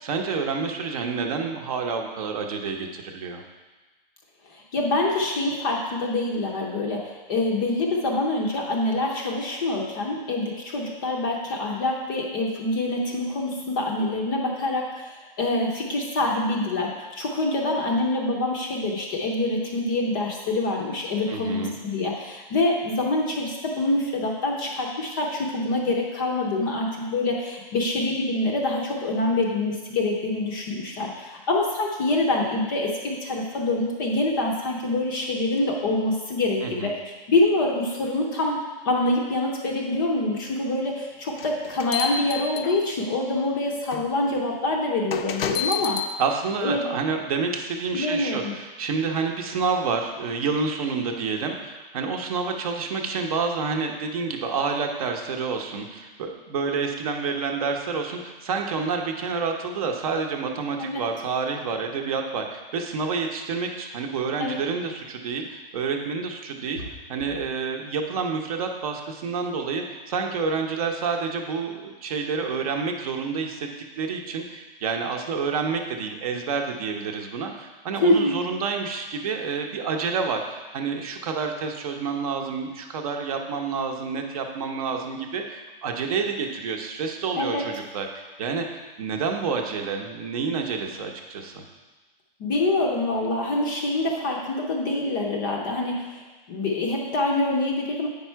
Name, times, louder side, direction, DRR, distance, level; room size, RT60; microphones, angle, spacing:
voice 1, 0.0-3.4 21.3-21.8 36.6-36.9 46.2-66.8 67.1-73.7 74.0-88.7 89.0-91.6, right 5 dB, 40° right, 3 dB, 0.8 m, -28 dB
voice 2, 4.5-37.0 37.3-46.0 46.6-46.9 47.9-48.5 60.8-61.0 64.4-64.6 78.0-78.4 87.4-87.6 92.4-98.1, left 2 dB, 20° left, 0 dB, 0.6 m, -25 dB
sound 1, 41.4-43.1 43.9-44.0 45.1-46.1, left 6 dB, 90° left, 0.8 m, -29 dB
8.4 x 5.4 x 4.5 m, 1.2 s
supercardioid pair, 175°, 29 cm